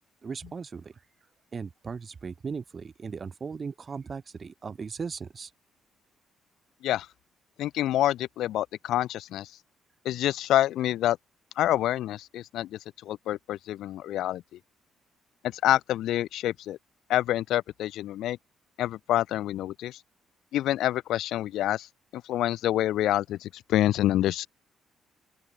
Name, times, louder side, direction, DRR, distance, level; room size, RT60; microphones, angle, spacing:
voice 1, 0.2-1.0 1.5-5.5, right 5 dB, 40° right, 3.1 m, -37 dB
voice 2, 7.6-9.5 10.0-11.2 11.6-14.4 15.4-16.8 17.1-18.4 18.8-20.0 20.5-21.9 22.1-24.5, left 13 dB, 80° left, 3.0 m, -27 dB
open air
cardioid pair, 90°, 0 cm